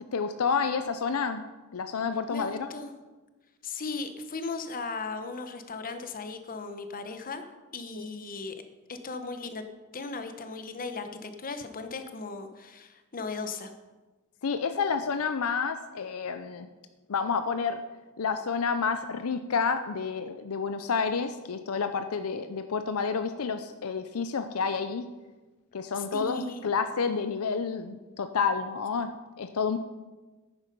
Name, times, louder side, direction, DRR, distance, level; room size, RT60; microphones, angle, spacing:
voice 1, 0.1-1.4 1.7-2.7 8.0-8.1 14.4-16.7 17.1-17.8 18.2-25.1 25.7-29.8, left 5 dB, 75° left, 9 dB, 0.6 m, -29 dB
voice 2, 2.3-2.9 3.6-7.4 7.7-8.5 8.9-9.6 9.9-13.7 26.0-26.6, left 4 dB, 40° left, 8 dB, 1.0 m, -37 dB
11.0 x 8.9 x 5.4 m, 1.2 s
head